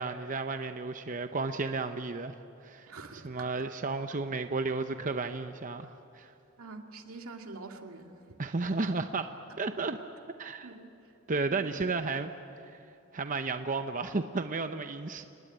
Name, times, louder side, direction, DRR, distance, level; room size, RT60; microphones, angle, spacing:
voice 1, 0.0-2.4 2.6-2.9 3.1-6.3 8.4-10.1 10.4-10.7 11.3-12.3 12.7-12.8 13.1-15.2, right 3 dB, 40° right, 8 dB, 0.7 m, -33 dB
voice 2, 2.9-3.5 6.6-8.1 10.6-10.9 11.5-12.0, right 3 dB, 85° right, 3 dB, 2.3 m, -46 dB
28.0 x 19.5 x 9.0 m, 2.7 s
head